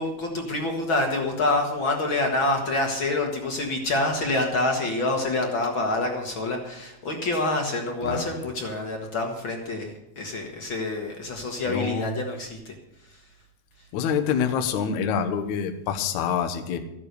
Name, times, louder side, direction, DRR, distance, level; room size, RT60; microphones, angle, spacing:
voice 1, 0.0-12.7 13.1-13.2, left 2 dB, 45° left, 1 dB, 1.7 m, -27 dB
voice 2, 11.7-12.1 13.9-16.8, left 7 dB, 65° left, 5 dB, 2.1 m, -26 dB
14.5 x 9.8 x 6.8 m, 0.90 s
omnidirectional pair, 4.3 m